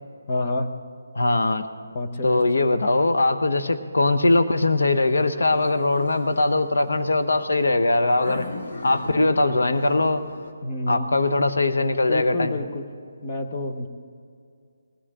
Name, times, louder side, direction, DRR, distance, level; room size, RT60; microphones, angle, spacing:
voice 1, 0.3-0.7 1.9-2.4 10.6-11.1 12.1-12.9 13.2-13.9, left 2 dB, 35° left, 5 dB, 1.1 m, -28 dB
voice 2, 1.1-1.6 2.2-8.5 8.8-10.2 10.9-12.5, left 2 dB, 80° left, 8 dB, 1.0 m, -21 dB
sound 1, 4.5-10.5, left 2 dB, 60° left, 2.0 m, -40 dB
20.0 x 16.0 x 3.7 m, 2.3 s
hypercardioid pair, 165°, 0 cm